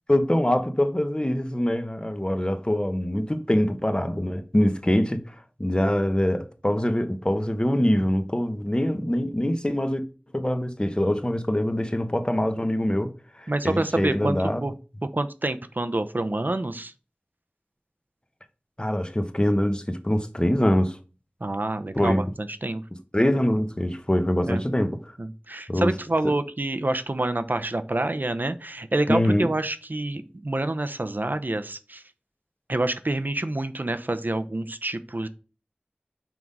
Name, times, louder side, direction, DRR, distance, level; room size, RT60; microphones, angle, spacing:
voice 1, 0.1-5.3 5.6-10.0 10.3-13.1 13.4-14.6 18.8-21.0 22.0-22.3 23.1-25.0 25.7-25.9 26.2-26.3 29.1-29.5, left 1 dB, 25° left, 0.9 m, -24 dB
voice 2, 13.5-14.8 15.0-16.9 21.4-22.8 24.4-24.6 25.2-32.0 32.7-35.3, right 2 dB, 60° right, 0.6 m, -27 dB
6.0 x 3.7 x 5.3 m
wide cardioid pair, 40°, 4 cm